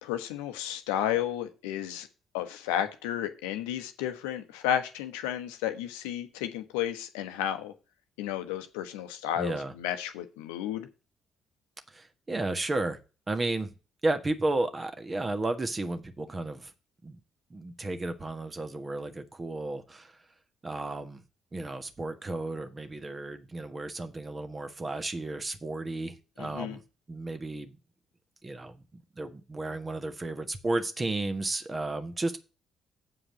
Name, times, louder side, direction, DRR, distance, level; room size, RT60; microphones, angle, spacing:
voice 1, 0.0-2.1 2.3-7.7 8.2-10.9 26.4-26.8, left 11 dB, 75° left, 9 dB, 0.9 m, -32 dB
voice 2, 9.4-9.7 11.9-13.0 13.3-13.7 14.0-16.7 17.0-17.2 17.5-20.2 20.6-21.2 21.5-26.8 27.1-27.8 28.4-28.8 29.2-32.4, right 2 dB, 30° right, 8 dB, 1.6 m, -33 dB
7.8 x 4.9 x 7.3 m, 0.32 s
figure-of-eight pair, 45°, 0 cm